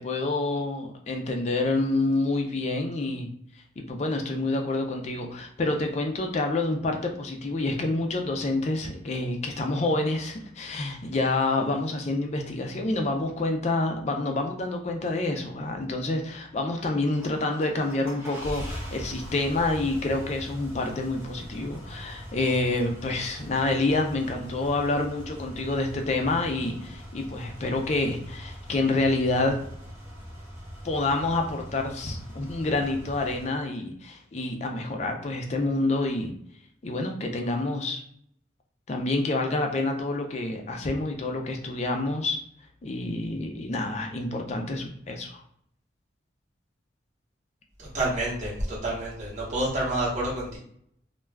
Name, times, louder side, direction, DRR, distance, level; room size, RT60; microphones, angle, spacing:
voice 1, 0.0-3.3 3.8-29.6 30.8-36.3 36.8-38.0 38.9-42.4 42.8-45.4, left 2 dB, 35° left, 4 dB, 0.4 m, -28 dB
sound 1, 17.0-33.5, equal, 15° right, 0.7 m, -41 dB
voice 2, 47.8-50.6, right 1 dB, 40° right, -5 dB, 1.0 m, -28 dB
2.3 x 2.2 x 3.2 m, 0.68 s
head